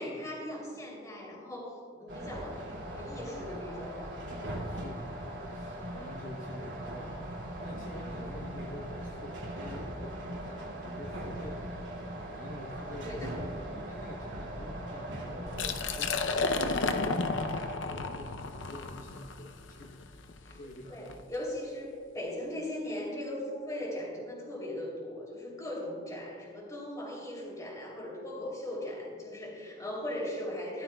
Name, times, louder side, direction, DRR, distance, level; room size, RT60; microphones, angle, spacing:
voice 1, 0.0-2.6 2.9-4.1 12.9-13.3 20.4-20.6 20.9-30.8, left 1 dB, 20° left, -3 dB, 3.2 m, -39 dB
sound 1, 2.1-17.7, right 1 dB, 75° right, 2.7 m, -40 dB
voice 2, 4.6-13.3 13.9-21.3, left 1 dB, 45° left, -2 dB, 1.0 m, -47 dB
Liquid, 15.5-21.2, left 3 dB, 80° left, 0.6 m, -33 dB
16.5 x 12.5 x 2.3 m, 2.1 s
head